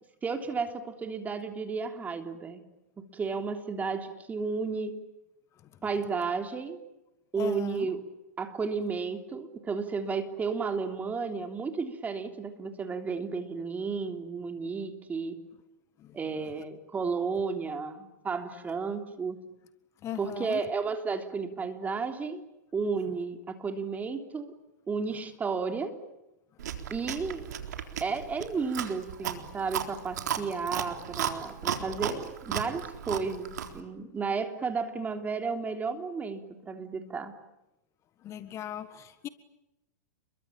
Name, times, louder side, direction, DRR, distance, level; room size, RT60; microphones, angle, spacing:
voice 1, 0.2-2.6 3.0-5.0 5.8-6.8 7.3-8.0 8.4-15.4 16.1-19.4 20.2-22.4 22.7-24.6 24.9-26.0 26.9-27.5 28.0-37.3, right 5 dB, 15° right, 6 dB, 3.4 m, -33 dB
voice 2, 7.4-7.9 16.0-16.2 20.0-20.6 38.2-39.3, left 11 dB, 30° left, 12 dB, 1.7 m, -38 dB
Chewing mastication, 26.6-33.8, right 9 dB, 75° right, 3.8 m, -35 dB
29.5 x 23.0 x 8.8 m, 0.92 s
hypercardioid pair, 120°, 10 cm